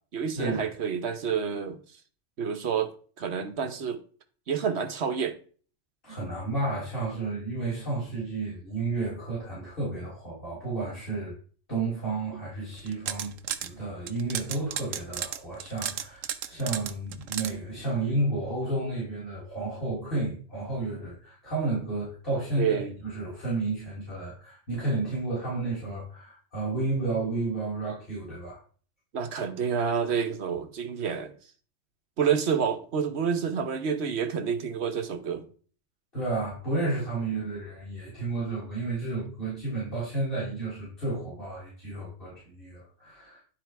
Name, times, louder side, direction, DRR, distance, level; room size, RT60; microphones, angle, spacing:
voice 1, 0.1-1.8 2.4-4.0 4.5-5.4 22.6-22.9 29.1-31.3 32.2-35.5, right 7 dB, 60° right, 1.2 m, -28 dB
voice 2, 6.0-11.3 11.7-13.3 13.6-28.6 36.1-43.4, right 2 dB, 45° left, 4.6 m, -32 dB
sound 1, 12.8-13.7 14.1-17.5, right 10 dB, 80° right, 1.1 m, -33 dB
11.0 x 4.0 x 4.6 m
omnidirectional pair, 1.3 m